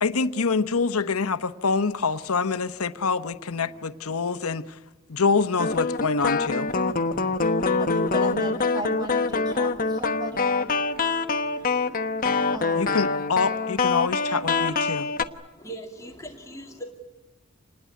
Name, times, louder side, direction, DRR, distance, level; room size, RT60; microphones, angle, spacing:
voice 1, 0.0-4.6 5.1-6.7 12.8-15.1, left 4 dB, 85° left, 11 dB, 1.0 m, -25 dB
sound 1, 5.6-15.2, left 4 dB, 40° left, 1.1 m, -25 dB
voice 2, 7.8-10.5 12.5-13.0, right 2 dB, 20° right, 4 dB, 5.8 m, -36 dB
voice 3, 15.6-16.9, right 1 dB, 15° left, 1 dB, 2.3 m, -39 dB
27.0 x 20.5 x 9.4 m, 1.1 s
head